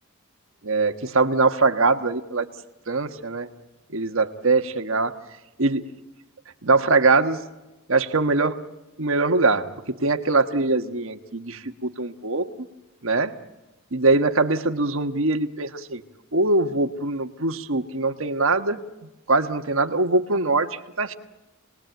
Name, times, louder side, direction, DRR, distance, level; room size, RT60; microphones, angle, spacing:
voice 1, 0.6-2.5 2.9-3.5 3.9-5.2 5.6-5.9 6.6-7.4 7.9-8.6 9.0-12.5 13.0-13.4 13.9-16.0 16.3-18.8 19.3-21.1, right 3 dB, 60° right, 7 dB, 1.4 m, -22 dB
28.0 x 20.5 x 9.2 m, 1.0 s
head